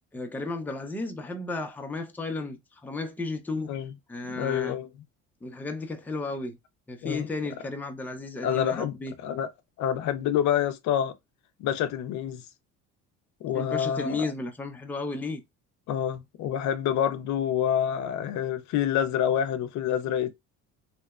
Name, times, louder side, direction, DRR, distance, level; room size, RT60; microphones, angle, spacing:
voice 1, 0.1-3.7 4.1-4.7 5.4-6.6 6.9-9.1 13.5-15.4, left 3 dB, 5° left, 0.5 m, -33 dB
voice 2, 4.3-4.9 7.0-7.3 8.4-9.0 9.2-9.5 9.8-11.1 11.6-12.4 13.4-14.2 15.9-20.3, left 9 dB, 60° left, 0.4 m, -27 dB
2.8 x 2.1 x 2.3 m
cardioid pair, 100°, 32 cm